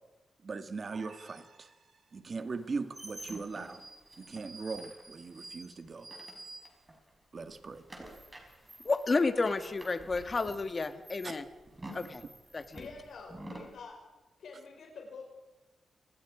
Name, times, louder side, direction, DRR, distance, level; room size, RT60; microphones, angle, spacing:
voice 1, 0.4-1.7 2.1-3.8 4.2-6.1 7.3-7.8 11.2-11.4, right 4 dB, 45° right, 9 dB, 1.8 m, -39 dB
sound 1, 0.9-2.5, right 4 dB, 70° right, 5.0 m, -57 dB
sound 2, 2.5-7.1 7.4-13.7, right 1 dB, 20° right, 5.5 m, -49 dB
voice 2, 8.8-11.4 11.9-12.2 12.5-12.9, left 3 dB, 35° left, 9 dB, 1.7 m, -31 dB
voice 3, 12.7-14.0 14.4-15.3, left 4 dB, 75° left, 0 dB, 5.5 m, -47 dB
29.0 x 20.5 x 5.0 m, 1.1 s
cardioid pair, 105°, 0 cm